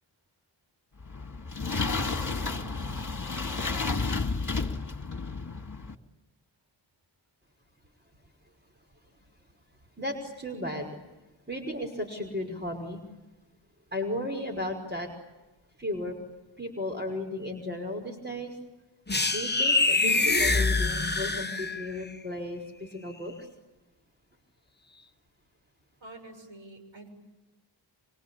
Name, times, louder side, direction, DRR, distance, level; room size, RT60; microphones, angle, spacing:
sound 1, 1.0-6.0, left 4 dB, 40° left, 2.6 m, -31 dB
voice 1, 10.0-11.0 11.5-13.0 13.9-15.1 15.8-16.2 16.6-18.6 19.3-23.5, left 1 dB, 20° right, 3 dB, 5.6 m, -35 dB
sound 2, 19.1-22.0, left 3 dB, 20° left, 1.4 m, -25 dB
voice 2, 26.0-27.1, right 2 dB, 65° right, 6 dB, 7.0 m, -47 dB
26.0 x 25.5 x 8.7 m, 1.1 s
cardioid pair, 50°, 48 cm